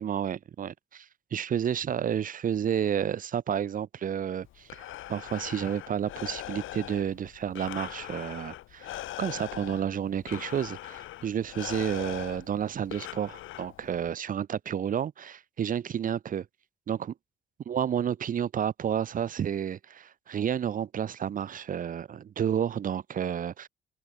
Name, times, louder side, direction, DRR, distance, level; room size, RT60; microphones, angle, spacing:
voice 1, 0.0-16.5 16.9-17.1 17.7-23.7, right 8 dB, 45° right, 0.5 m, -31 dB
Breathing, 4.4-14.1, left 14 dB, 85° left, 1.6 m, -41 dB
cardioid pair, 90°, 20 cm